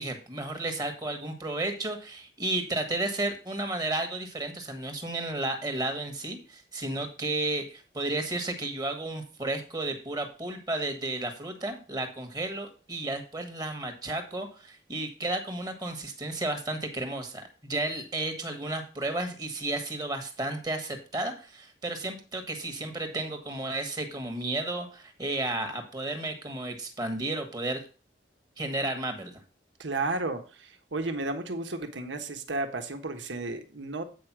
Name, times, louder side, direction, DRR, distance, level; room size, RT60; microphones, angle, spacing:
voice 1, 0.0-27.8 28.6-29.3, right 2 dB, 20° right, 6 dB, 1.4 m, -33 dB
voice 2, 29.8-34.0, right 2 dB, 85° right, 6 dB, 1.4 m, -33 dB
8.6 x 5.0 x 6.1 m, 0.36 s
head